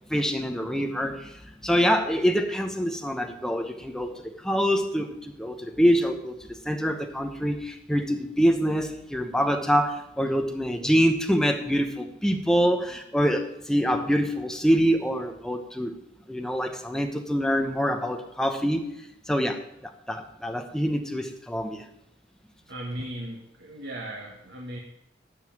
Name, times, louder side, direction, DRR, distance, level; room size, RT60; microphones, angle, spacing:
voice 1, 0.1-1.2 1.6-5.1 5.4-6.3 6.7-15.9 16.3-18.8 19.3-19.6 20.1-21.8, equal, 5° left, 5 dB, 1.0 m, -25 dB
voice 2, 22.7-24.8, right 1 dB, 65° right, -1 dB, 1.6 m, -37 dB
12.5 x 5.6 x 8.8 m, 0.83 s
head